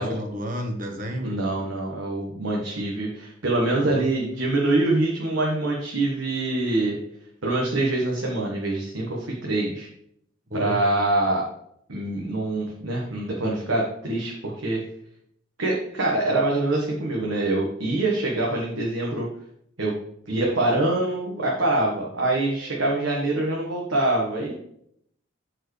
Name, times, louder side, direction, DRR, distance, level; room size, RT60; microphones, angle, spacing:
voice 1, 0.0-1.4 3.7-4.1 10.5-10.8, equal, 45° right, 3 dB, 1.3 m, -31 dB
voice 2, 1.2-7.0 7.4-9.9 10.5-11.4 11.9-14.8 15.6-19.3 19.8-19.9 20.3-24.5, right 2 dB, 80° right, -2 dB, 1.4 m, -25 dB
12.5 x 4.6 x 3.3 m, 0.72 s
head